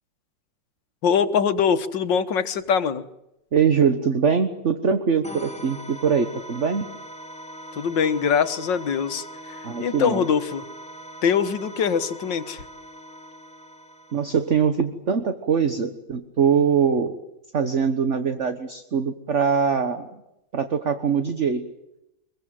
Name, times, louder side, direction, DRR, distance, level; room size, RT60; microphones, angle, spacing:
voice 1, 1.0-3.0 7.8-10.7 11.2-12.6, left 7 dB, 85° left, 10 dB, 2.0 m, -23 dB
voice 2, 3.5-6.9 9.6-10.2 14.1-17.2 17.5-20.1 20.5-21.7, right 6 dB, 45° right, 8 dB, 1.5 m, -22 dB
sound 1, 5.2-14.7, right 1 dB, 5° left, 2.1 m, -41 dB
24.5 x 22.5 x 7.7 m, 0.88 s
omnidirectional pair, 1.9 m